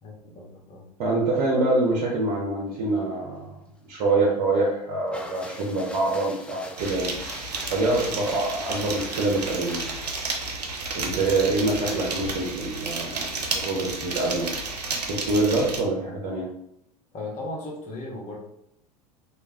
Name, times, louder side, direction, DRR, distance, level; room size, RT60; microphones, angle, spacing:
voice 1, 0.0-0.9 7.9-8.2 17.1-18.4, left 2 dB, 35° left, -2 dB, 1.0 m, -36 dB
voice 2, 1.0-3.6 3.9-7.1 7.7-9.9 10.9-14.5 15.0-16.5, right 2 dB, 55° right, -3 dB, 0.7 m, -25 dB
sound 1, 5.1-10.1, left 1 dB, 5° left, 0.3 m, -42 dB
sound 2, 6.8-15.8, right 3 dB, 85° right, 0.5 m, -32 dB
2.4 x 2.2 x 3.4 m, 0.76 s
figure-of-eight pair, 80°, 20 cm